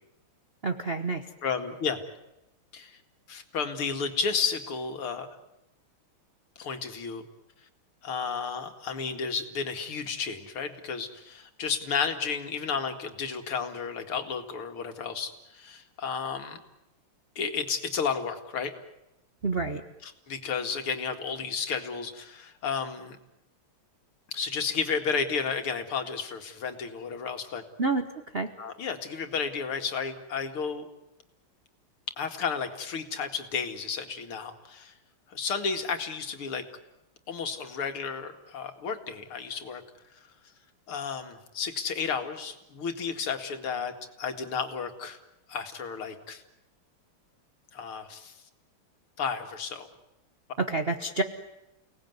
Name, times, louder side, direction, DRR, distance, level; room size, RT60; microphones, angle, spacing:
voice 1, 0.6-1.3 19.4-19.8 27.8-28.0 28.3-28.5 50.6-51.2, right 3 dB, 35° right, 7 dB, 1.0 m, -28 dB
voice 2, 1.4-2.0 2.7-3.0 3.3-5.3 6.6-7.3 8.0-16.6 17.4-18.7 20.0-23.2 24.3-27.6 28.6-30.9 32.2-34.9 35.3-36.6 37.3-39.8 40.9-43.9 44.2-45.2 45.5-46.4 47.7-48.3 49.2-49.9, left 5 dB, 75° left, 6 dB, 3.0 m, -32 dB
30.0 x 18.5 x 9.5 m, 0.92 s
omnidirectional pair, 2.4 m